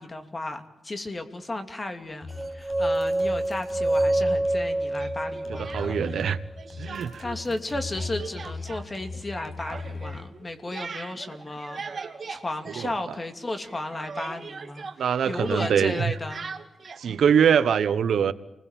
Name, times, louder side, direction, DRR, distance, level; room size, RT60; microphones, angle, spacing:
voice 1, 0.0-6.2 7.0-11.8 12.3-14.9 15.3-16.5 17.1-17.2, left 2 dB, 25° left, 7 dB, 2.7 m, -34 dB
sound 1, 2.2-10.2, left 4 dB, 55° left, 5.9 m, -38 dB
sound 2, 2.4-6.5, right 1 dB, 15° right, 1.0 m, -27 dB
Speech, 4.9-6.3 6.6-7.4 7.7-13.4 13.6-17.1, right 5 dB, 40° right, 2.5 m, -40 dB
voice 2, 5.6-6.4 6.8-7.2 12.8-12.9 15.0-16.0 17.0-18.3, right 8 dB, 80° right, 14 dB, 1.2 m, -23 dB
29.0 x 21.5 x 9.2 m, 0.92 s
wide cardioid pair, 140°, 0 cm